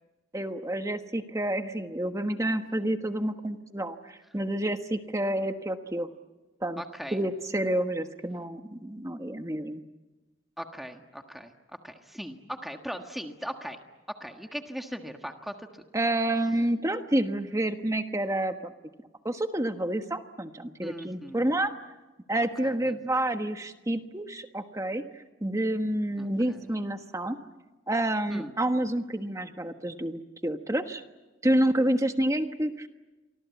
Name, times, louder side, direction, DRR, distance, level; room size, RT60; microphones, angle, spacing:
voice 1, 0.3-6.1 6.6-6.8 7.1-9.8 15.9-18.7 19.2-21.7 22.3-25.0 25.4-27.4 27.9-31.0 31.4-32.9, right 1 dB, 15° right, 7 dB, 1.3 m, -29 dB
voice 2, 6.8-7.2 10.6-11.5 11.8-13.8 14.2-15.8 20.8-21.6 22.6-23.0 26.2-26.6 28.3-28.5, equal, ahead, 4 dB, 1.5 m, -39 dB
29.0 x 24.5 x 8.4 m, 1.1 s
head